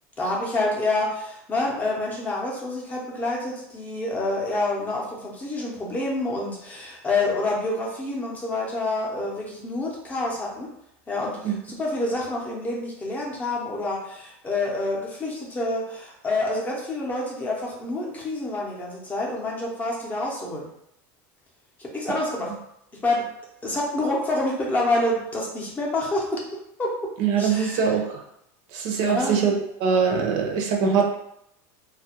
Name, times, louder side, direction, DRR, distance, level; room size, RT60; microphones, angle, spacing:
voice 1, 0.2-10.7 11.1-20.7 21.8-22.5 23.0-23.3 23.6-26.4 26.8-26.9 27.4-27.9 29.0-29.4, left 2 dB, 20° left, -3 dB, 0.6 m, -27 dB
voice 2, 27.2-28.2 28.7-29.5 29.8-31.0, right 6 dB, 60° right, 2 dB, 0.5 m, -22 dB
2.3 x 2.0 x 2.8 m, 0.75 s
supercardioid pair, 135°, 9 cm